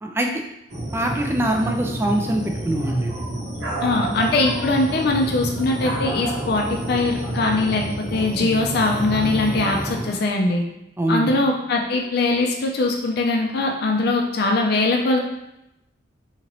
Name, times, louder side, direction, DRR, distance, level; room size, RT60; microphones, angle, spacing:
sound 1, 0.7-10.2, right 1 dB, 65° right, 1.0 m, -29 dB
voice 1, 0.9-3.1 8.4-8.5 11.0-11.3, right 1 dB, 15° right, 2 dB, 0.3 m, -23 dB
voice 2, 3.8-10.6 11.1-15.2, left 2 dB, 55° left, 1 dB, 0.4 m, -21 dB
3.9 x 2.9 x 2.9 m, 0.86 s
head